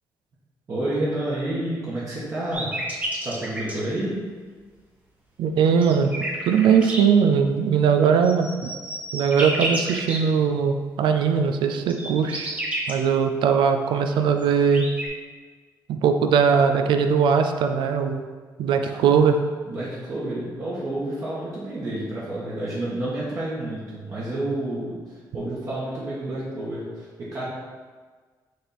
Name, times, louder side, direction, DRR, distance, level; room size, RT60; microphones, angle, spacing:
voice 1, 0.7-2.7 3.2-4.2 18.9-19.0 19.7-27.4, right 1 dB, 40° right, -8 dB, 1.4 m, -29 dB
sound 1, 2.5-3.8 5.6-7.0 8.0-10.2 11.6-12.9 14.1-14.2 14.4-15.1, right 1 dB, 20° right, 1.0 m, -30 dB
voice 2, 5.4-6.1 6.5-8.7 9.1-12.5 12.9-14.9 15.9-18.2 18.6-19.4, right 6 dB, 85° right, 6 dB, 0.5 m, -20 dB
6.4 x 3.5 x 4.3 m, 1.5 s
cardioid pair, 140°, 8 cm